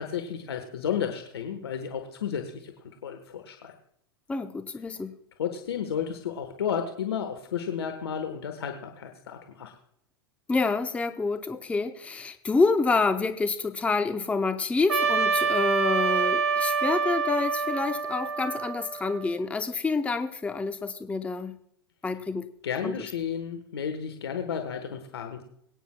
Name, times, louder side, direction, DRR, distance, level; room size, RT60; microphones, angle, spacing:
voice 1, 0.0-2.7 3.0-3.7 5.4-9.7 22.6-25.4, left 8 dB, 75° left, 5 dB, 1.2 m, -32 dB
voice 2, 4.3-5.2 10.5-21.6 22.0-22.5 22.8-23.1, left 4 dB, 10° left, 9 dB, 0.6 m, -28 dB
Trumpet, 14.9-19.4, right 5 dB, 85° right, 1.2 m, -26 dB
22.5 x 9.2 x 2.2 m, 0.69 s
hypercardioid pair, 100°, 13 cm